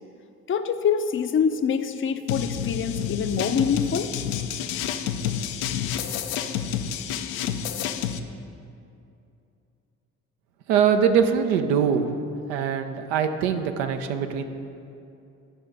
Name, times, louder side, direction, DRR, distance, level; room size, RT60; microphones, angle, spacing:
voice 1, 0.5-4.1, left 6 dB, 30° left, 9 dB, 0.6 m, -25 dB
sound 1, 2.3-8.2, left 9 dB, 70° left, 0.6 m, -29 dB
voice 2, 10.7-12.0 12.5-14.4, right 7 dB, 65° right, 7 dB, 0.7 m, -22 dB
11.5 x 5.4 x 4.9 m, 2.6 s
figure-of-eight pair, 45°, 41 cm